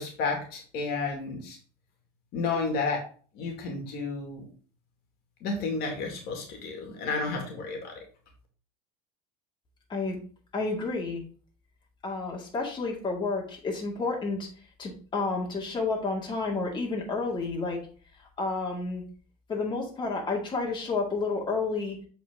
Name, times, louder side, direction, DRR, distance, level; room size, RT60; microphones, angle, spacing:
voice 1, 0.0-1.6 2.3-3.0 3.3-4.5 5.4-8.0, left 4 dB, 55° left, 2 dB, 2.0 m, -31 dB
voice 2, 10.5-11.2 12.0-14.5 14.8-17.8 18.4-19.0 19.5-22.0, left 3 dB, 25° left, -2 dB, 2.1 m, -30 dB
7.4 x 4.2 x 3.6 m, 0.41 s
hypercardioid pair, 90°, 19 cm